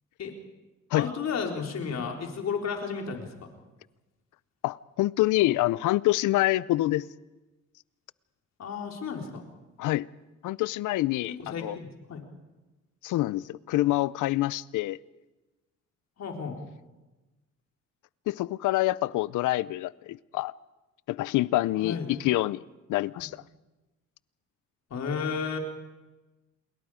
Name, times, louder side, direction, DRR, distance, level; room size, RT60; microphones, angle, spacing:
voice 1, 0.9-3.5 8.6-9.4 11.4-12.3 16.2-16.6 21.8-22.1 24.9-25.6, left 6 dB, 60° left, 4.4 m, -33 dB
voice 2, 4.6-7.1 9.8-10.1 10.4-11.8 13.0-15.0 18.3-20.5 21.1-22.6 22.9-23.4, left 17 dB, 85° left, 0.6 m, -26 dB
28.5 x 21.5 x 5.1 m
cardioid pair, 90°, 30 cm